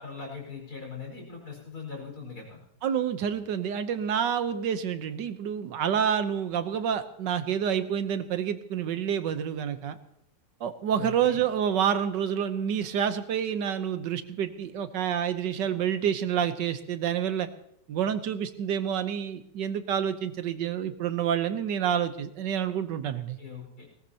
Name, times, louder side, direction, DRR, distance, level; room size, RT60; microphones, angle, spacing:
voice 1, 0.0-2.6 11.0-11.4 23.0-23.8, left 5 dB, 60° left, -1 dB, 5.5 m, -41 dB
voice 2, 2.8-10.0 10.6-17.5 17.9-23.4, right 8 dB, 90° right, 10 dB, 1.6 m, -28 dB
20.0 x 17.5 x 2.9 m, 0.75 s
omnidirectional pair, 1.9 m